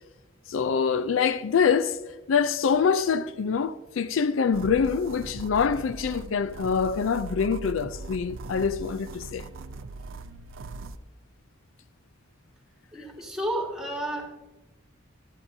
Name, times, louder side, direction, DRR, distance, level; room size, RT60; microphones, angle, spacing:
voice 1, 0.5-2.0 2.3-9.5, left 6 dB, 80° left, 0.4 m, -25 dB
sound 1, 4.5-11.0, right 3 dB, 90° right, 0.5 m, -40 dB
voice 2, 12.9-14.4, right 1 dB, 5° right, 1.8 m, -32 dB
16.5 x 12.0 x 2.7 m
head